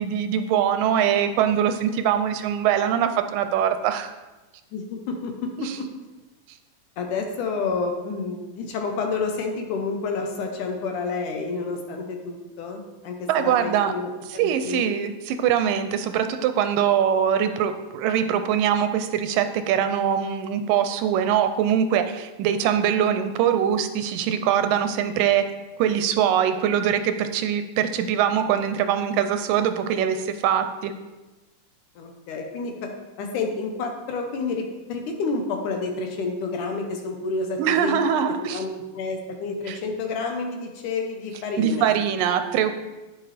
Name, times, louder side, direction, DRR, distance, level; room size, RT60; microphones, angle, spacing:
voice 1, 0.0-4.1 5.6-5.8 13.3-14.0 14.3-25.4 25.8-30.9 37.6-38.6 39.7-39.8 41.6-42.7, right 9 dB, 80° right, 9 dB, 2.1 m, -23 dB
voice 2, 4.7-5.5 5.8-5.9 7.0-14.1 14.4-14.9 32.0-32.9 33.2-34.6 34.9-38.0 38.3-42.0, left 4 dB, 70° left, 3 dB, 2.3 m, -29 dB
9.6 x 9.5 x 3.3 m, 1.1 s
omnidirectional pair, 4.1 m